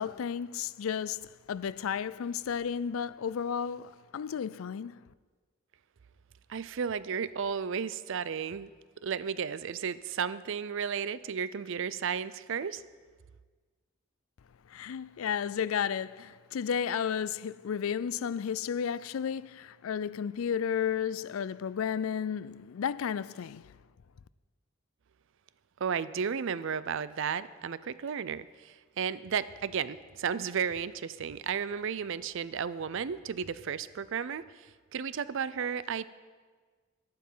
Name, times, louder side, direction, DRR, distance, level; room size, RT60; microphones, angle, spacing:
voice 1, 0.0-4.9 14.7-23.6, left 7 dB, 80° left, 0.4 m, -33 dB
voice 2, 6.5-8.7 9.0-12.8 25.8-34.4 34.9-36.1, right 7 dB, 65° right, 0.5 m, -33 dB
11.5 x 11.5 x 5.5 m
head